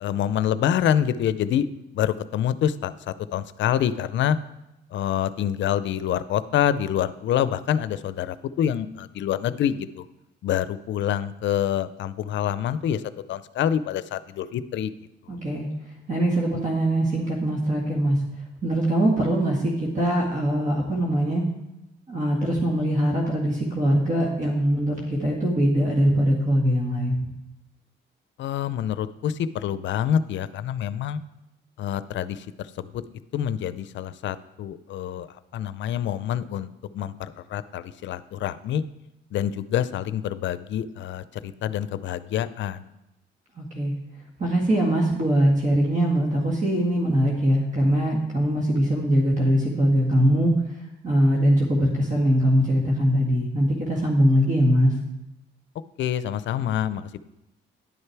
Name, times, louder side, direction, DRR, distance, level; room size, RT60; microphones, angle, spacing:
voice 1, 0.0-1.7 1.9-4.4 4.9-10.0 10.4-13.0 13.3-14.9 28.4-31.2 31.8-32.5 32.8-33.0 33.3-35.3 35.5-36.7 36.9-38.8 39.3-42.9 56.0-57.2, left 10 dB, 70° left, 15 dB, 0.5 m, -26 dB
voice 2, 15.3-15.7 16.1-18.2 18.6-21.4 22.1-27.3 43.6-43.9 44.4-50.5 51.0-54.9, equal, 40° right, -2 dB, 1.9 m, -22 dB
10.5 x 6.6 x 4.6 m, 0.92 s
cardioid pair, 90°, 20 cm